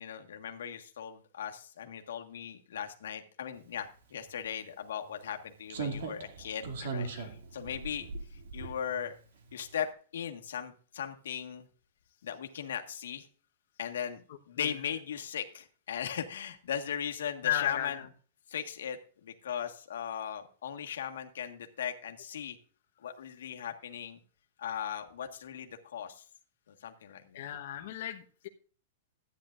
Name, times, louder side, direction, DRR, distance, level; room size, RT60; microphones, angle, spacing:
voice 1, 0.0-7.1 7.5-8.1 8.5-9.1 9.5-11.6 12.2-13.3 13.8-14.2 14.5-18.0 18.5-22.6 23.0-24.2 24.6-26.2 26.7-27.4, left 8 dB, 90° left, 4 dB, 1.5 m, -38 dB
Slam, 4.3-4.4 5.7-9.2 9.5-9.7, right 4 dB, 65° right, 2.2 m, -39 dB
voice 2, 6.8-7.3 8.6-8.7 14.6-14.7 17.4-18.1 27.3-28.5, left 12 dB, 50° left, 2 dB, 1.2 m, -35 dB
13.5 x 9.7 x 2.5 m, 0.41 s
supercardioid pair, 175°, 0 cm